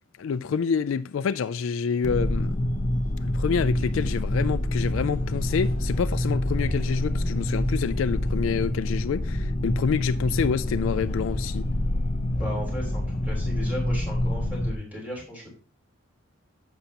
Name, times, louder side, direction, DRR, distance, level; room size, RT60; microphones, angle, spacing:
voice 1, 0.2-2.5 3.2-11.7, left 6 dB, 70° left, 0.3 m, -27 dB
sound 1, 2.0-14.7, left 1 dB, 35° left, 0.7 m, -27 dB
voice 2, 12.3-15.5, equal, 5° right, 3.6 m, -36 dB
10.5 x 7.1 x 2.9 m
head